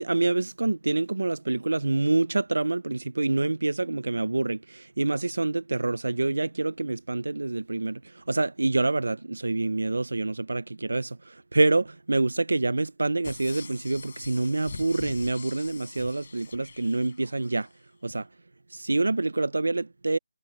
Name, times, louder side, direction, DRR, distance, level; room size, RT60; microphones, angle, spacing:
voice 1, 0.0-17.7 18.0-18.3 18.7-20.2, right 2 dB, 75° right, 1.0 m, -26 dB
sound 1, 13.2-17.7 18.1-18.2, left 5 dB, 40° left, 7.9 m, -44 dB
figure-of-eight pair, 170°, 0 cm